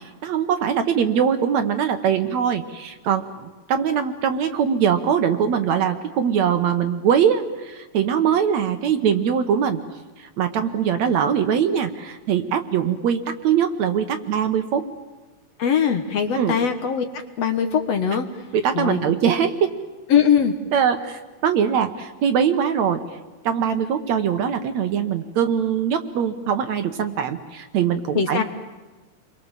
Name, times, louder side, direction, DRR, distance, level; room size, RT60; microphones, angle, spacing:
voice 1, 0.2-9.8 10.2-14.9 16.3-16.6 18.5-19.7 20.7-23.0 23.4-28.4, right 8 dB, 65° right, 8 dB, 2.1 m, -22 dB
voice 2, 15.6-17.1 17.4-18.3 18.7-19.0 20.1-20.5 28.2-28.4, left 7 dB, 55° left, 6 dB, 2.1 m, -20 dB
30.0 x 23.0 x 7.4 m, 1.2 s
omnidirectional pair, 3.8 m